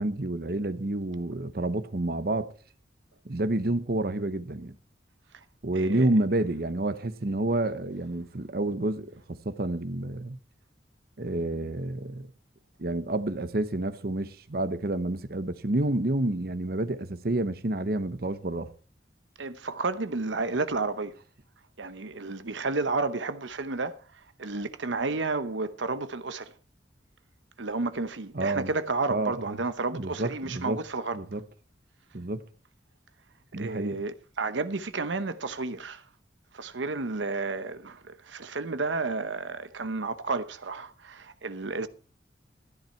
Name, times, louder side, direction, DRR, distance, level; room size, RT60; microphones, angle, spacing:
voice 1, 0.0-2.5 3.3-4.7 5.6-10.4 11.2-12.3 12.8-18.7 28.3-28.7 29.1-29.6 29.9-30.8 31.1-31.4 32.1-32.4 33.5-34.0, right 2 dB, 55° right, 0.8 m, -29 dB
voice 2, 5.7-6.1 19.4-21.1 21.8-26.5 27.6-31.2 33.6-36.0 36.5-41.9, right 3 dB, 85° right, 0.9 m, -31 dB
13.5 x 10.5 x 4.5 m
head